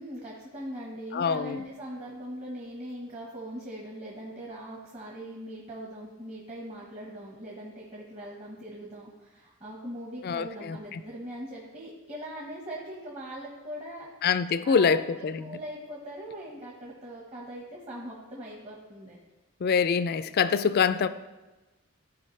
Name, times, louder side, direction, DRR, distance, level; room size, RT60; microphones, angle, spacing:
voice 1, 0.0-14.1 14.6-15.0 15.4-19.2, equal, 30° right, -4 dB, 1.3 m, -41 dB
voice 2, 1.1-1.6 10.2-11.0 14.2-15.6 19.6-21.1, left 6 dB, 45° left, 13 dB, 0.3 m, -25 dB
14.0 x 4.8 x 3.2 m, 1.1 s
head